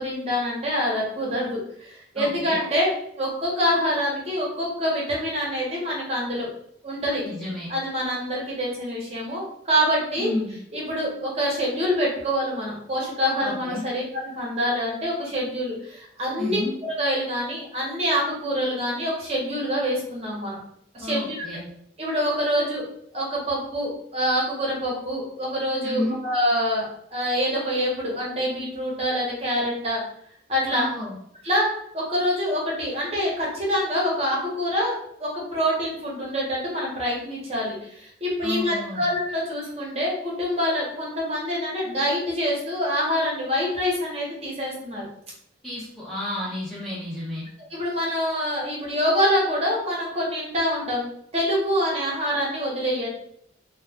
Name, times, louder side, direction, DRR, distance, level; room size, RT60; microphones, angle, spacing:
voice 1, 0.0-6.5 6.8-7.2 7.7-10.3 10.7-16.6 17.0-20.6 20.9-21.5 22.0-22.8 23.1-26.9 27.1-30.0 30.5-30.9 31.4-45.1 47.7-53.1, equal, 30° right, -4 dB, 0.9 m, -26 dB
voice 2, 2.2-2.7 7.2-7.7 10.2-10.6 13.4-13.9 16.4-16.7 21.0-21.7 25.8-26.2 30.7-31.1 38.4-39.0 45.6-47.5, left 1 dB, ahead, -8 dB, 0.5 m, -31 dB
2.3 x 2.2 x 3.4 m, 0.71 s
head